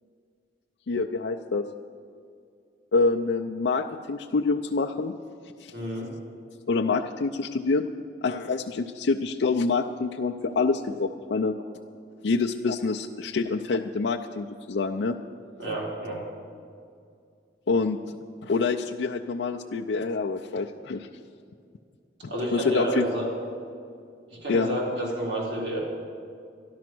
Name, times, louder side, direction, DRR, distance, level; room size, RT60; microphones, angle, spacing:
voice 1, 0.9-1.7 2.9-5.1 5.6-5.7 6.7-7.9 8.2-11.5 12.2-15.2 17.7-18.0 18.4-21.1 22.2-23.0 24.5-24.7, left 4 dB, 70° left, 2 dB, 0.4 m, -26 dB
voice 2, 5.7-6.1 15.6-16.2 22.3-23.2 24.3-25.8, right 1 dB, 75° right, -4 dB, 3.8 m, -29 dB
12.0 x 12.0 x 6.1 m, 2.3 s
head